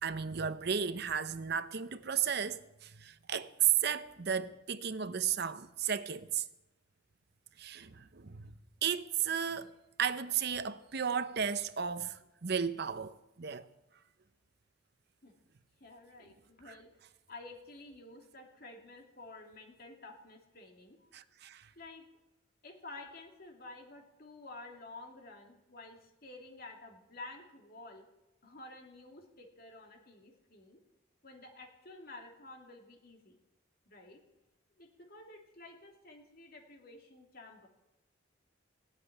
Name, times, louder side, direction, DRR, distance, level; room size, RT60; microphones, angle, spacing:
voice 1, 0.0-3.5 3.8-6.4 7.6-8.5 8.8-13.7 16.7-16.8 21.1-21.7, right 7 dB, 55° right, 0.7 m, -35 dB
voice 2, 15.8-16.9 17.3-21.1 21.7-22.0 22.6-28.0 28.4-30.8 31.2-33.4 33.9-34.2 34.8-37.7, left 2 dB, 50° left, 2.8 m, -51 dB
16.0 x 8.4 x 10.0 m
head